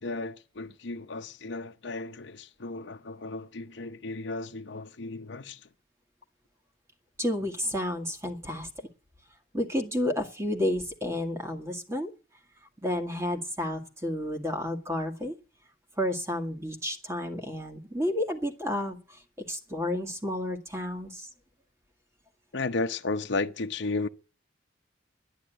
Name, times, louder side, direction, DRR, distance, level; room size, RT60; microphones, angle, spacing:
voice 1, 0.0-5.7 22.5-24.1, left 3 dB, 75° left, 0.8 m, -34 dB
voice 2, 7.2-8.7 9.5-12.1 12.8-15.3 16.0-19.0 19.5-21.3, left 1 dB, 15° right, 2.0 m, -31 dB
12.0 x 10.5 x 9.2 m
head